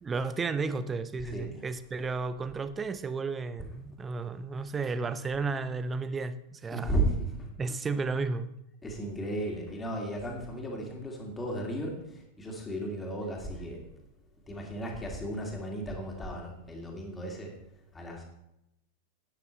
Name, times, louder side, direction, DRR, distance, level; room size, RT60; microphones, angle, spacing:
voice 1, 0.0-6.9 7.6-8.5, right 4 dB, 15° right, 13 dB, 0.6 m, -33 dB
voice 2, 1.2-1.6 4.6-4.7 6.7-7.5 8.8-13.9 14.5-17.5 17.9-18.2, right 1 dB, 15° left, 0 dB, 2.6 m, -34 dB
12.5 x 9.4 x 3.2 m, 0.84 s
figure-of-eight pair, 90°, 0 cm